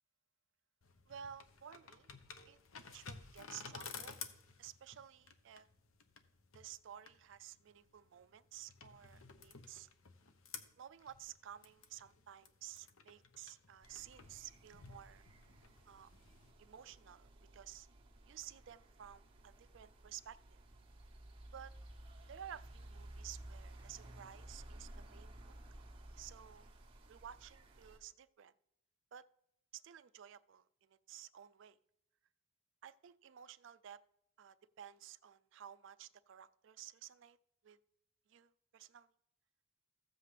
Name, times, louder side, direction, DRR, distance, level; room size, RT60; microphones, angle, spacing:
sound 1, 0.8-16.5, left 5 dB, 85° left, 0.8 m, -55 dB
voice 1, 1.1-2.1 2.5-2.6 2.9-4.2 4.6-5.7 6.5-9.9 10.8-15.2 15.9-16.1 16.6-17.9 18.3-20.6 21.5-21.7 22.3-25.5 26.2-26.7 27.1-28.5 29.1-29.2 29.7-31.8 32.8-34.0 34.4-37.4 37.6-37.8 38.3-39.1, right 10 dB, 65° right, 0.3 m, -54 dB
sound 2, 13.8-28.0, right 1 dB, 25° right, 1.3 m, -56 dB
15.0 x 7.5 x 3.3 m
head